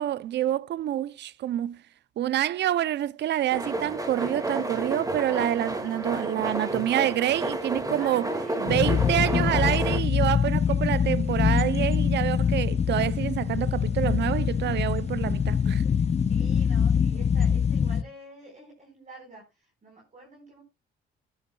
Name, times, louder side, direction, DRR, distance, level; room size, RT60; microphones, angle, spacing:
voice 1, 0.0-1.8 2.2-8.3 8.6-15.8, right 12 dB, 60° right, 0.4 m, -27 dB
sound 1, 3.5-10.0, right 1 dB, 15° right, 1.9 m, -31 dB
voice 2, 8.0-8.6 16.2-20.6, right 1 dB, 40° right, 4.2 m, -47 dB
sound 2, 8.7-18.0, left 7 dB, 35° left, 0.6 m, -24 dB
14.0 x 9.9 x 2.2 m
cardioid pair, 90°, 20 cm